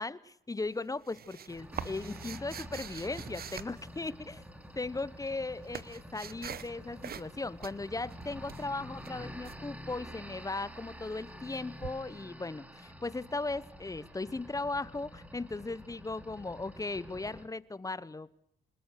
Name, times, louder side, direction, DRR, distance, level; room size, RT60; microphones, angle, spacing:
voice 1, 0.0-4.4 4.8-18.3, left 3 dB, 15° left, 18 dB, 0.9 m, -37 dB
sound 1, 0.6-4.4 5.2-6.7 7.0-7.3 7.6-9.6 11.8-11.9, right 8 dB, 50° right, 1.0 m, -44 dB
sound 2, 1.5-17.5, equal, 5° right, 2.4 m, -48 dB
25.5 x 20.5 x 6.5 m, 0.74 s
cardioid pair, 90°, 20 cm